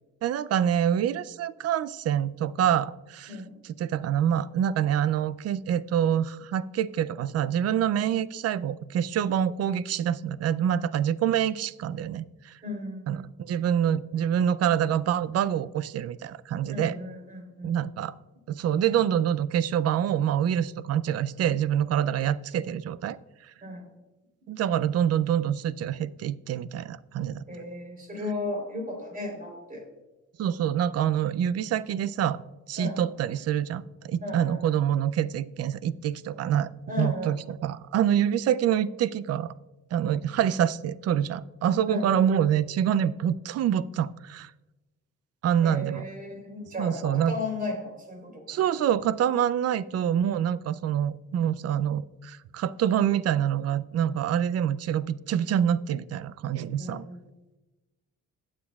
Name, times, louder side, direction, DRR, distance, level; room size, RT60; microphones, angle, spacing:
voice 1, 0.2-3.4 3.6-12.6 13.1-17.0 17.6-18.1 18.5-23.2 23.4-23.5 24.5-27.5 30.4-32.4 32.7-36.7 37.0-39.5 39.9-44.5 45.4-46.0 46.8-47.3 48.5-57.1, right 9 dB, 55° right, 17 dB, 0.4 m, -26 dB
voice 2, 12.6-13.3 16.7-17.7 23.6-23.8 27.5-29.9 32.8-33.0 34.2-34.6 36.9-37.3 41.9-42.1 45.6-48.6 56.8-57.2, left 2 dB, 30° right, 2 dB, 3.6 m, -35 dB
17.0 x 7.5 x 2.4 m, 1.1 s
cardioid pair, 90°, 30 cm